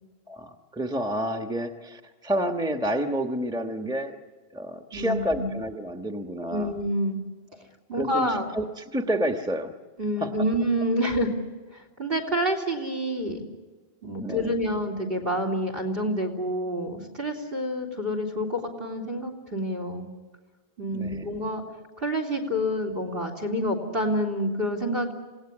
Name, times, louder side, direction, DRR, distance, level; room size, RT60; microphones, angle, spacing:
voice 1, 0.3-4.2 4.5-6.7 8.0-9.7 10.2-10.3 14.2-14.5 20.9-21.3, equal, 5° right, 5 dB, 1.2 m, -29 dB
voice 2, 4.9-5.5 6.5-7.2 7.9-8.5 10.0-11.3 11.7-13.5 14.0-20.1 20.8-21.6 22.0-25.1, equal, 65° right, 5 dB, 3.9 m, -28 dB
27.5 x 18.5 x 9.9 m, 1.3 s
omnidirectional pair, 1.1 m